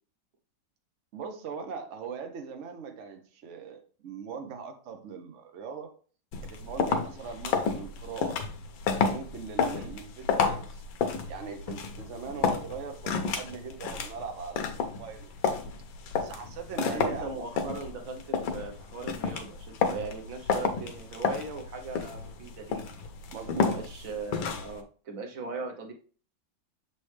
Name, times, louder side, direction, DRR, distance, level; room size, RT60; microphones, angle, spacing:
voice 1, 1.1-5.9 6.4-8.4 9.1-10.8 11.3-15.6 16.1-17.3 23.3-23.9, right 6 dB, 70° right, 5 dB, 0.6 m, -40 dB
sound 1, 6.3-24.8, left 5 dB, 75° left, 1.5 m, -31 dB
voice 2, 16.7-22.8 23.5-25.9, right 4 dB, 55° right, 4 dB, 1.1 m, -39 dB
7.0 x 4.2 x 3.2 m, 0.40 s
omnidirectional pair, 2.2 m